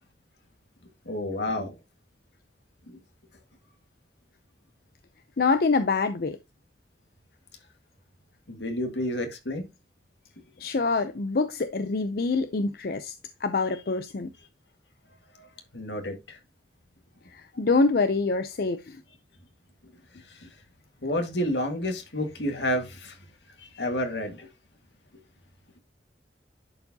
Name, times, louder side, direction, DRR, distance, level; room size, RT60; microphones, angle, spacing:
voice 1, 1.1-1.7 2.9-3.0 8.5-9.6 15.4-15.5 15.7-16.4 20.3-20.5 21.0-23.2 23.6-24.5, left 1 dB, 80° left, 1.9 m, -30 dB
voice 2, 5.4-6.4 10.6-13.1 13.4-14.3 17.3-19.0, left 3 dB, 60° left, 0.5 m, -25 dB
10.5 x 4.6 x 2.8 m
head